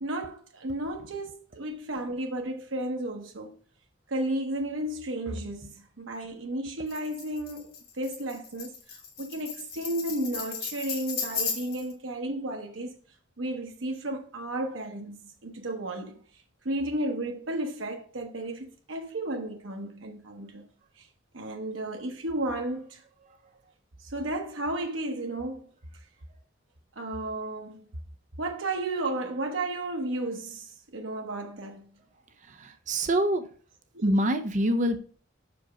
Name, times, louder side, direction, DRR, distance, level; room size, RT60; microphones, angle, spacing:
voice 1, 0.0-3.5 4.1-12.9 13.4-15.2 15.4-16.2 16.6-20.6 21.0-21.1 21.3-23.0 24.0-25.7 27.0-27.9 28.4-31.9 33.9-34.0, right 1 dB, 85° right, 0.9 m, -33 dB
Tambourine, 6.9-11.9, left 6 dB, 50° left, 1.4 m, -35 dB
voice 2, 32.6-33.4 34.0-35.0, right 1 dB, 40° right, 0.6 m, -25 dB
6.0 x 5.0 x 5.0 m
head